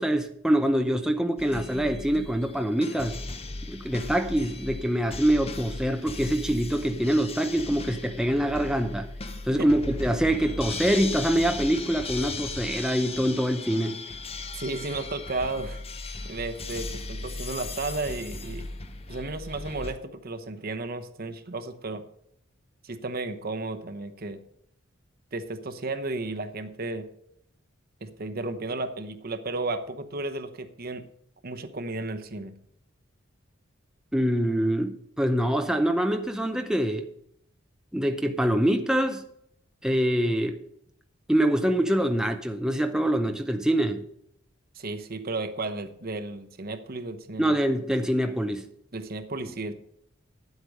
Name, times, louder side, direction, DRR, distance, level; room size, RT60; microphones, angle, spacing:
voice 1, 0.0-3.2 3.7-9.1 9.5-14.1 34.1-37.1 37.9-39.3 39.8-40.6 41.3-44.0 47.4-48.7, right 1 dB, 5° right, 0.6 m, -25 dB
sound 1, 1.4-19.9, left 3 dB, 30° left, 0.9 m, -37 dB
voice 2, 14.5-15.8 16.2-18.7 19.1-22.0 22.8-24.4 25.3-27.1 28.0-31.0 31.4-32.5 44.7-47.6 48.9-49.7, right 2 dB, 50° right, 1.0 m, -33 dB
10.5 x 8.0 x 5.3 m
head